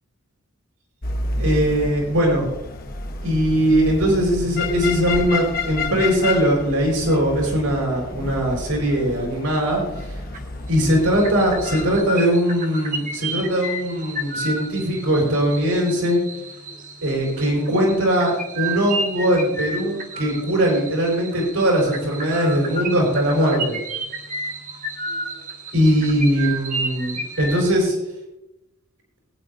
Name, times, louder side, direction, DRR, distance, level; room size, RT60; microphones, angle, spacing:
sound 1, 1.0-12.0, left 3 dB, 40° left, 0.9 m, -30 dB
voice 1, 1.4-2.5 3.2-9.8 10.7-16.2 17.0-23.8 25.7-28.0, equal, 80° right, -1 dB, 4.3 m, -20 dB
sound 2, 10.3-10.6 10.9-27.7, right 2 dB, 35° right, 1.3 m, -32 dB
20.0 x 9.6 x 2.6 m, 0.91 s
head